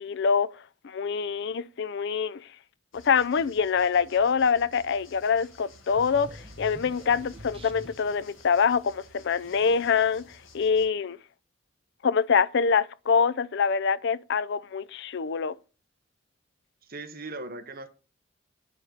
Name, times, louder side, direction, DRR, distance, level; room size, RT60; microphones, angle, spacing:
voice 1, 0.0-2.4 2.9-10.2 10.5-11.2 12.0-15.6, left 6 dB, 60° left, 0.5 m, -25 dB
sound 1, 2.9-10.9, left 3 dB, 80° left, 2.1 m, -53 dB
sound 2, 5.9-8.2, right 1 dB, 30° right, 1.0 m, -45 dB
voice 2, 16.8-17.9, right 2 dB, 50° right, 1.3 m, -39 dB
9.9 x 4.0 x 6.5 m
head